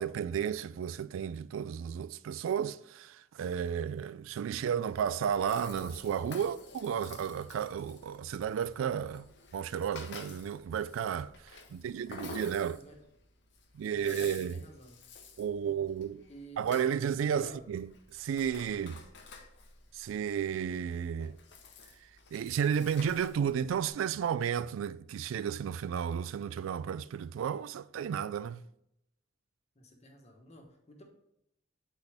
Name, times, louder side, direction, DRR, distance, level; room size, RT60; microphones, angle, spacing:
voice 1, 0.0-11.3 11.7-12.8 13.7-14.6 15.4-16.2 16.6-19.0 19.9-21.4 22.3-28.6, right 8 dB, 85° right, 0.3 m, -33 dB
Rattle (instrument), 4.9-23.9, left 4 dB, 60° left, 0.8 m, -51 dB
voice 2, 13.9-15.0 16.3-16.7 17.3-17.6 29.7-31.0, right 1 dB, 35° left, 1.1 m, -51 dB
8.4 x 4.1 x 3.3 m
head